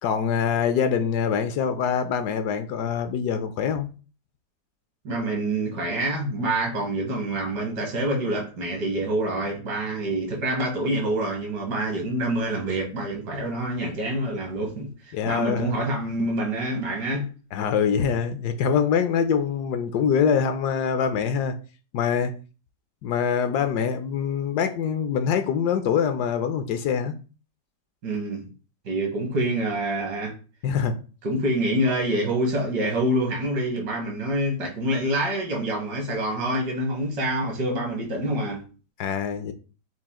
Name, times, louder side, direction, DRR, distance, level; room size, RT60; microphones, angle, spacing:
voice 1, 0.0-3.9 15.1-15.7 17.5-21.5 21.9-22.3 23.0-27.2 30.6-30.9 39.0-39.5, left 7 dB, 75° left, 1.1 m, -24 dB
voice 2, 5.0-17.3 28.0-28.5 28.9-30.3 31.2-38.6, right 1 dB, 75° right, 1.8 m, -26 dB
5.8 x 2.4 x 3.6 m
omnidirectional pair, 1.9 m